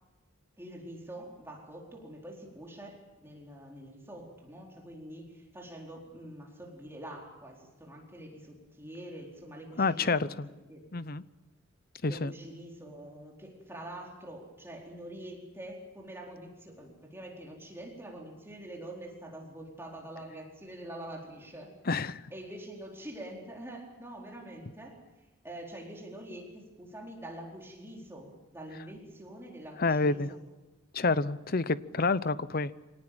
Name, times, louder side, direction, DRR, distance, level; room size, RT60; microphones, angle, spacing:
voice 1, 0.6-10.3 10.7-10.9 12.0-21.8 22.3-25.0 25.4-30.4, right 1 dB, 10° right, -1 dB, 4.3 m, -45 dB
voice 2, 9.8-10.5 10.9-11.2 12.0-12.3 21.9-22.2 29.8-30.3 30.9-32.7, left 3 dB, 45° left, 16 dB, 0.8 m, -28 dB
25.0 x 18.5 x 9.0 m, 1.1 s
head